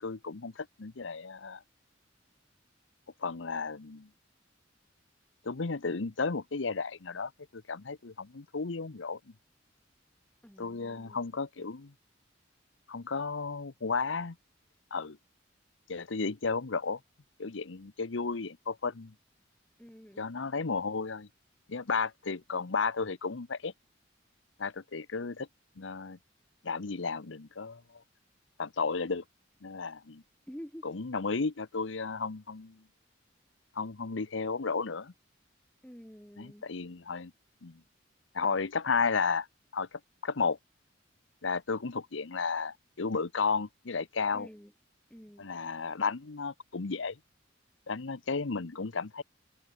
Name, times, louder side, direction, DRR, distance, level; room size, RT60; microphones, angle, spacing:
voice 1, 0.0-1.6 3.2-4.1 5.4-9.2 10.6-11.9 12.9-14.4 14.9-15.2 15.9-17.0 17.4-19.1 20.2-21.3 21.7-23.7 24.6-25.5 25.8-26.2 26.6-28.0 28.6-29.2 29.6-30.2 30.8-32.8 33.7-35.1 36.4-37.3 37.6-37.8 38.3-39.5 39.7-40.6 41.4-44.5 45.4-47.2 47.9-49.2, left 4 dB, 75° left, 0.9 m, -33 dB
voice 2, 10.4-11.2 19.8-20.2 30.5-30.9 35.8-36.6 44.3-44.7 45.1-45.5, equal, 5° left, 4.8 m, -48 dB
head